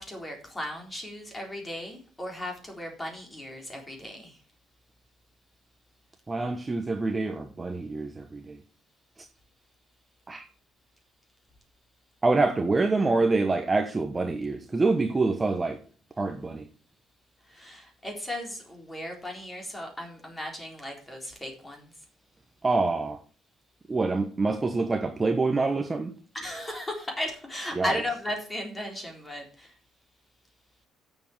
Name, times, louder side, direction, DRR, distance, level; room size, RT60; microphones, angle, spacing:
voice 1, 0.0-4.4 17.5-21.9 26.3-29.7, left 1 dB, 15° left, 3.9 m, -36 dB
voice 2, 6.3-8.6 10.3-10.4 12.2-15.8 16.2-16.6 22.6-23.2 23.9-26.1 27.8-27.9, right 3 dB, 20° right, 1.0 m, -26 dB
9.2 x 7.4 x 7.3 m
cardioid pair, 135°, 0 cm